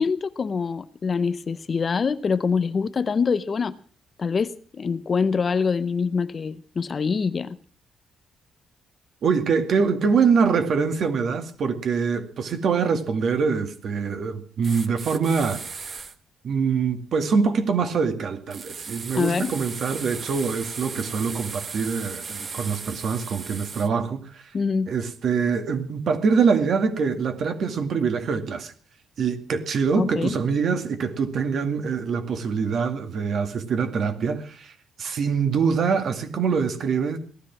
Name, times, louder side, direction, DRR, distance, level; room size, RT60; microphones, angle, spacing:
voice 1, 0.0-3.7 4.2-7.6 19.1-19.5 24.5-24.9 30.0-30.4, left 5 dB, 30° left, 0.7 m, -25 dB
voice 2, 9.2-15.6 16.4-24.4 24.9-28.7 29.2-34.7 35.0-37.2, right 5 dB, 50° right, 2.2 m, -24 dB
sound 1, 14.6-16.1 18.5-23.9, right 5 dB, 30° right, 1.1 m, -36 dB
18.0 x 13.5 x 6.1 m
cardioid pair, 165°, 0 cm